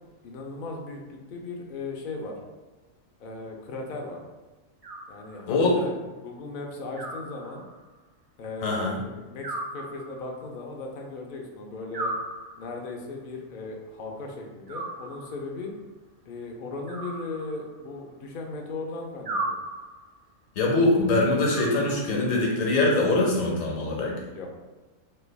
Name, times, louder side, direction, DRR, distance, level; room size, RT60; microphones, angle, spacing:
voice 1, 0.2-2.3 3.2-4.2 5.1-7.6 8.4-12.1 12.6-15.7 16.3-19.6 24.3-24.5, left 3 dB, 65° left, 1 dB, 0.5 m, -37 dB
Animal, 4.8-5.7 7.0-8.0 9.4-10.5 11.9-12.9 14.7-15.6 16.9-18.0 19.2-20.2 21.5-22.4, right 2 dB, 50° right, 0.4 m, -36 dB
voice 2, 8.6-9.0 20.6-24.1, left 2 dB, 80° left, -2 dB, 1.1 m, -23 dB
3.2 x 2.2 x 3.3 m, 1.2 s
omnidirectional pair, 1.4 m